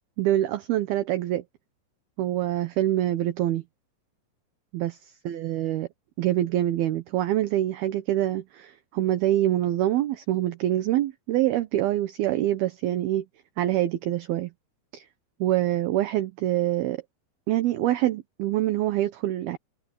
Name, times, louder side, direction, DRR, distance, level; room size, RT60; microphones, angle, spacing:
voice 1, 0.2-1.4 2.2-3.6 4.7-5.0 5.3-5.9 6.2-13.2 13.6-14.5 14.9-15.0 15.4-17.0 17.5-19.6, right 13 dB, 70° right, 2.7 m, -25 dB
omnidirectional pair, 5.1 m